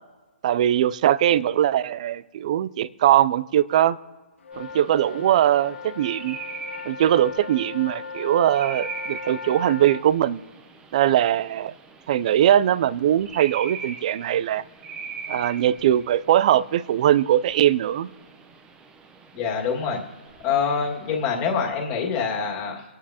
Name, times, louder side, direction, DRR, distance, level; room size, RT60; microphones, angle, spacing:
voice 1, 0.4-4.0 4.6-6.4 6.9-10.4 10.9-11.7 12.1-14.6 15.3-18.1, right 11 dB, 35° right, 19 dB, 0.3 m, -21 dB
sound 1, 4.4-10.0, left 5 dB, 75° left, 1.0 m, -37 dB
sound 2, 4.5-21.7, right 5 dB, 10° right, 0.7 m, -42 dB
voice 2, 19.3-20.0 20.4-22.8, left 6 dB, 25° left, 0 dB, 2.0 m, -25 dB
24.5 x 9.6 x 2.9 m, 1.3 s
hypercardioid pair, 160°, 7 cm